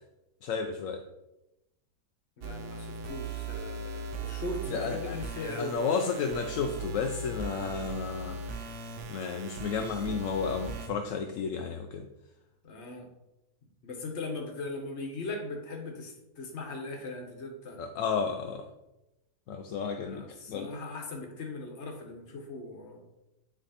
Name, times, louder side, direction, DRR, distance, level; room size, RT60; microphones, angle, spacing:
voice 1, 0.4-1.0 4.7-5.2 5.6-8.4 9.1-12.1 17.8-18.6 19.5-20.7, left 5 dB, 70° left, 4 dB, 0.8 m, -32 dB
voice 2, 2.4-5.8 12.6-13.1 13.8-17.8 20.0-23.0, left 2 dB, 45° left, 3 dB, 1.3 m, -39 dB
sound 1, 2.4-10.9, right 3 dB, 60° right, 0.9 m, -38 dB
9.6 x 3.2 x 4.2 m, 0.94 s
omnidirectional pair, 1.7 m